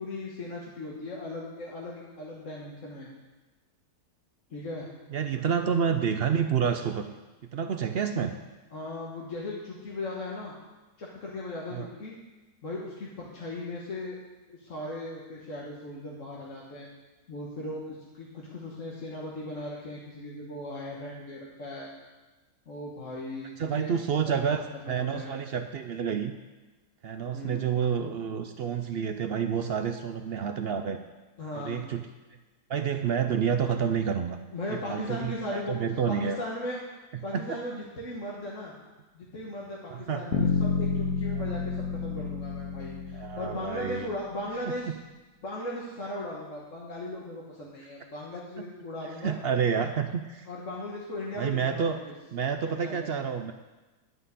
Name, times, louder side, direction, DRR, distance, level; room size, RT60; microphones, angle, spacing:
voice 1, 0.0-3.1 4.5-4.9 5.3-5.6 8.7-10.5 11.0-12.1 12.6-14.2 14.5-16.9 17.3-21.9 22.7-24.0 24.4-24.5 24.8-25.3 27.3-27.7 31.4-31.8 34.5-35.8 36.1-36.8 37.2-38.7 39.1-44.9 45.4-49.4 50.5-52.1 52.6-53.1, left 1 dB, 50° left, -4 dB, 1.8 m, -38 dB
voice 2, 5.1-7.2 7.5-8.3 11.7-11.9 23.6-26.3 27.0-31.0 31.5-32.1 32.7-34.4 34.7-36.4 37.3-37.6 39.9-40.5 41.3-41.4 43.1-44.1 44.9-45.0 49.2-50.5 51.4-52.0 52.3-53.5, right 7 dB, 70° right, 7 dB, 0.5 m, -29 dB
Bass guitar, 40.3-44.3, left 5 dB, 85° left, 1.4 m, -30 dB
11.0 x 5.6 x 8.3 m, 1.2 s
omnidirectional pair, 1.7 m